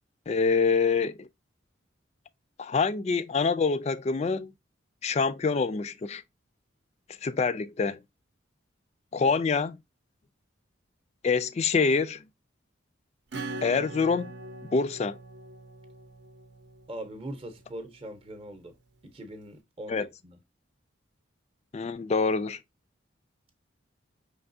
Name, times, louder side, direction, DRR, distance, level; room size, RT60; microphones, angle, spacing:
voice 1, 0.3-1.3 2.6-4.5 5.0-6.2 7.2-8.0 9.1-9.8 11.2-12.2 13.6-14.3 14.7-15.2 19.9-20.1 21.7-22.6, left 4 dB, 35° left, 0.3 m, -26 dB
Acoustic guitar / Strum, 13.3-17.6, right 2 dB, 60° right, 0.7 m, -41 dB
voice 2, 16.9-18.8 19.0-20.4, right 1 dB, 30° right, 0.7 m, -41 dB
5.4 x 3.4 x 2.6 m
head